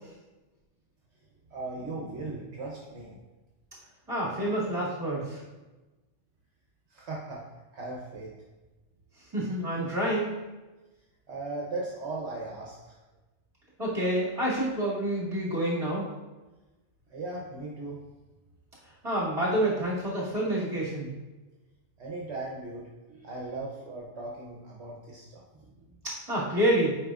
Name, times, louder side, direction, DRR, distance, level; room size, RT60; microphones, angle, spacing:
voice 1, 1.5-3.2 6.9-7.4 7.7-8.3 11.3-12.9 17.1-18.0 22.0-25.4, right 2 dB, 70° right, -3 dB, 1.1 m, -38 dB
voice 2, 4.1-5.4 9.3-10.4 13.8-16.0 19.0-21.1 26.0-26.9, right 1 dB, 25° right, -7 dB, 2.3 m, -28 dB
8.6 x 4.9 x 2.4 m, 1.1 s
omnidirectional pair, 1.2 m